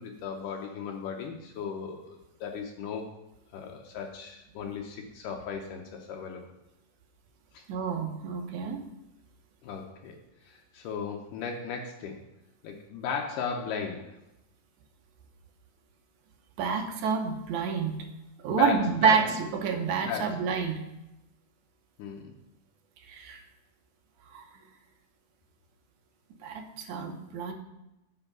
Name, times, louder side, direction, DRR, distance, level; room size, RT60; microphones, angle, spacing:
voice 1, 0.0-3.1 3.5-6.5 7.5-7.6 9.6-10.2 10.4-12.2 12.6-14.2 18.5-19.2 20.0-20.4 22.0-22.4, left 6 dB, 80° left, 2 dB, 2.4 m, -36 dB
voice 2, 7.7-8.8 16.6-18.0 18.4-20.8 23.1-23.4 24.3-24.4 26.4-27.5, right 6 dB, 70° right, 4 dB, 2.2 m, -28 dB
9.1 x 4.5 x 6.0 m, 0.92 s
omnidirectional pair, 3.8 m